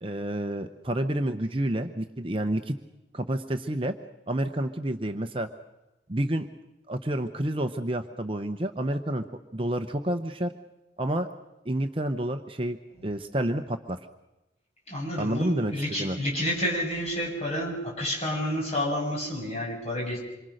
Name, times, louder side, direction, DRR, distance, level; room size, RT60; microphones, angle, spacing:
voice 1, 0.0-2.8 3.1-4.0 4.3-5.5 6.1-6.5 6.9-9.2 9.5-10.5 11.0-11.3 11.7-12.8 13.0-14.0 15.2-15.7 16.0-16.2, right 1 dB, 30° right, 7 dB, 0.8 m, -29 dB
voice 2, 14.9-20.2, equal, 35° left, -2 dB, 7.4 m, -29 dB
27.0 x 24.0 x 6.5 m, 0.98 s
head